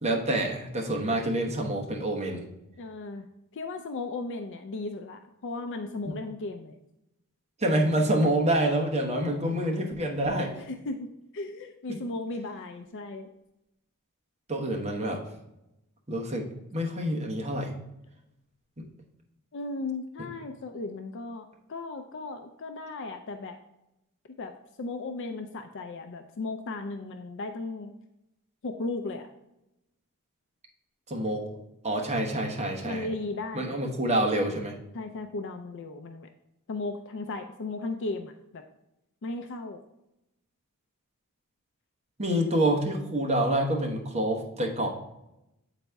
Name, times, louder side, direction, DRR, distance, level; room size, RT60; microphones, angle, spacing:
voice 1, 0.0-2.5 6.0-6.1 7.6-10.6 14.5-15.2 16.1-16.5 16.7-17.7 31.1-31.5 31.8-33.1 33.5-34.7 42.2-44.9, right 1 dB, 30° right, 0 dB, 1.1 m, -27 dB
voice 2, 2.8-3.3 3.5-6.7 10.6-13.3 19.5-23.6 24.4-27.9 28.6-29.3 32.8-33.8 34.9-36.3 36.7-38.6 39.2-39.8, left 2 dB, 55° left, 6 dB, 0.4 m, -36 dB
8.0 x 4.1 x 3.4 m, 0.88 s
head